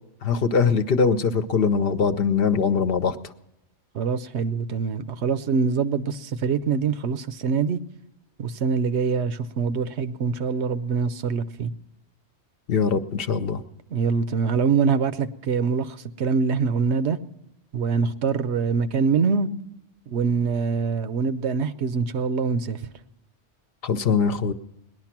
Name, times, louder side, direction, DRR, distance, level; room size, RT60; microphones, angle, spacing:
voice 1, 0.2-3.2 12.7-13.6 23.8-24.5, left 5 dB, 60° left, 0.9 m, -22 dB
voice 2, 3.9-7.8 8.4-11.7 13.9-17.2 17.7-19.5 20.1-22.8, right 5 dB, 75° right, 1.0 m, -24 dB
18.5 x 11.0 x 5.9 m
omnidirectional pair, 1.2 m